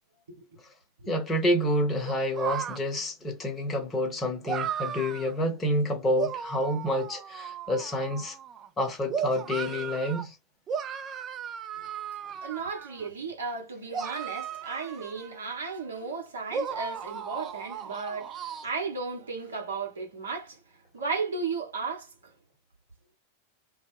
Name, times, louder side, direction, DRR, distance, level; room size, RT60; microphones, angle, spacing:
voice 1, 1.1-8.4 8.8-10.3, left 1 dB, 20° left, 0.8 m, -28 dB
sound 1, 2.0-2.8 4.4-5.3 6.1-8.7 9.1-10.2 10.7-13.1 13.9-15.8 16.5-18.6, right 7 dB, 25° right, 0.3 m, -36 dB
voice 2, 12.4-20.6 20.9-22.1, right 4 dB, 70° right, 0.9 m, -34 dB
2.1 x 2.0 x 3.0 m
figure-of-eight pair, 90°, 0 cm